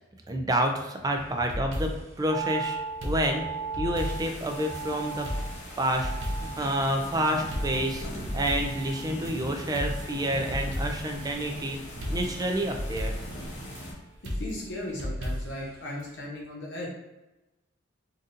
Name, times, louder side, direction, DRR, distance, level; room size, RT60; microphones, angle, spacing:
voice 1, 0.3-2.8 3.0-3.5 3.8-5.3 5.8-6.1 6.4-11.8 12.1-13.1, right 1 dB, 20° right, 3 dB, 0.4 m, -29 dB
sound 1, 1.2-2.2 3.0-4.8 5.2-6.7 7.0-7.1 7.5-9.3 9.7-11.2 11.5-11.6 12.0-13.8 14.2-15.7 16.0-16.1, equal, 70° right, 0.6 m, -34 dB
sound 2, 2.3-14.6 14.8-14.9, right 5 dB, 85° left, 1.0 m, -40 dB
sound 3, 3.9-13.9, equal, 35° left, 0.8 m, -40 dB
voice 2, 14.4-16.9, left 1 dB, 65° left, -3 dB, 0.9 m, -36 dB
4.0 x 2.5 x 2.6 m, 1.0 s
head